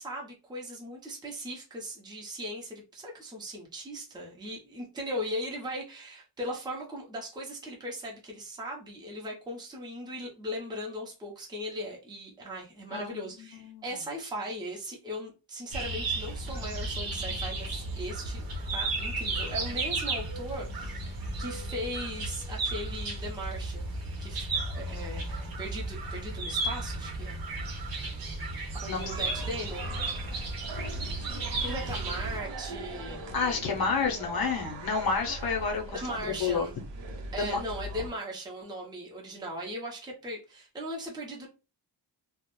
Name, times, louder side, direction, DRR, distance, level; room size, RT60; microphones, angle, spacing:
voice 1, 0.0-24.5 24.7-27.4 28.8-29.9 31.6-33.3 35.9-36.7 37.3-41.5, equal, 10° right, 0.6 m, -38 dB
voice 2, 12.9-13.8 28.8-29.1 33.3-36.7 37.4-37.6, left 5 dB, 60° left, 0.7 m, -30 dB
sound 1, 15.7-32.4, right 2 dB, 55° right, 0.8 m, -34 dB
sound 2, 29.0-38.1, right 2 dB, 85° right, 0.7 m, -40 dB
2.3 x 2.1 x 3.0 m
wide cardioid pair, 165°, 42 cm